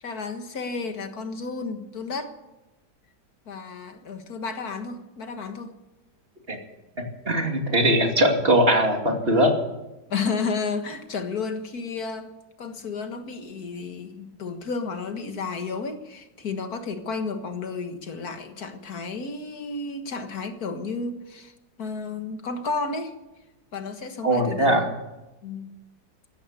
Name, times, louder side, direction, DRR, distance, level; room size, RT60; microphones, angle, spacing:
voice 1, 0.0-2.4 3.5-5.7 10.1-12.3 12.6-21.5 21.8-23.1 23.7-24.8 25.4-25.7, left 4 dB, 55° left, 7 dB, 1.9 m, -32 dB
voice 2, 7.0-9.5 24.2-24.9, right 1 dB, 30° right, 3 dB, 2.7 m, -21 dB
15.5 x 13.5 x 6.7 m, 1.0 s
omnidirectional pair, 2.0 m